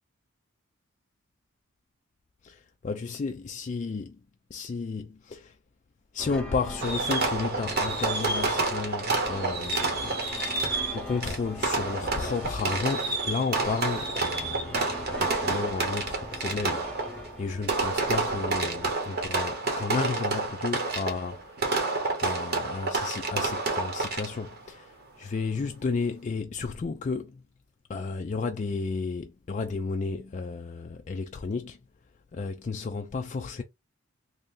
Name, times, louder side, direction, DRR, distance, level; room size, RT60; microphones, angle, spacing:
voice 1, 2.4-4.2 4.5-5.5 6.1-10.5 10.9-14.8 15.1-27.4 27.9-31.8 32.3-33.6, left 4 dB, 35° left, 0.3 m, -33 dB
sound 1, 6.2-18.9, left 1 dB, 5° left, 0.7 m, -42 dB
Fireworks, 6.8-24.6, right 3 dB, 50° right, 1.0 m, -29 dB
3.1 x 2.6 x 3.6 m
head